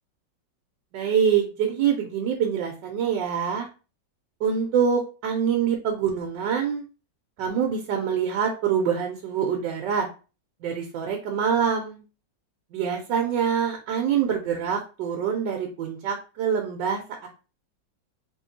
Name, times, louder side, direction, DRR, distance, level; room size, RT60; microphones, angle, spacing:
voice 1, 0.9-3.7 4.4-6.8 7.4-10.1 10.6-12.0 12.7-17.3, right 7 dB, 80° right, 2 dB, 1.3 m, -25 dB
3.5 x 3.1 x 2.6 m, 0.33 s
omnidirectional pair, 2.0 m